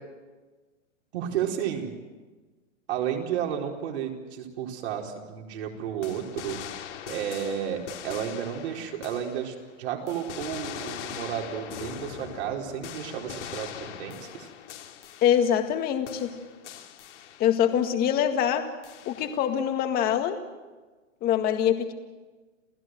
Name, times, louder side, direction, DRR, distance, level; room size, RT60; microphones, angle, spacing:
voice 1, 1.1-1.9 2.9-6.6 7.1-14.5, right 9 dB, 55° right, 1 dB, 4.6 m, -32 dB
sound 1, 6.0-9.7 10.1-15.8 16.1-17.7 18.8-19.6, left 10 dB, 60° left, 2.6 m, -41 dB
voice 2, 15.2-16.3 17.4-18.6 19.1-20.4 21.2-21.9, left 9 dB, 25° left, 6 dB, 1.9 m, -24 dB
29.0 x 16.0 x 7.9 m, 1.3 s
hypercardioid pair, 145°, 39 cm